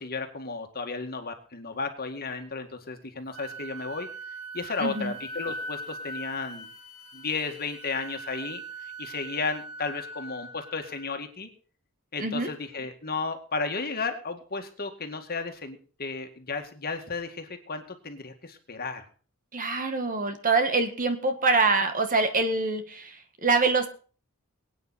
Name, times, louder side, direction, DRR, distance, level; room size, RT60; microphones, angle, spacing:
voice 1, 0.0-4.1 4.5-6.7 7.1-11.5 12.1-19.1, left 4 dB, 45° left, 5 dB, 2.0 m, -34 dB
Wind instrument woodwind instrument, 3.3-11.1, right 1 dB, 65° left, 1.8 m, -41 dB
voice 2, 4.8-5.1 12.2-12.5 19.5-23.9, right 3 dB, 40° right, 7 dB, 1.7 m, -25 dB
23.0 x 9.2 x 4.3 m, 0.39 s
head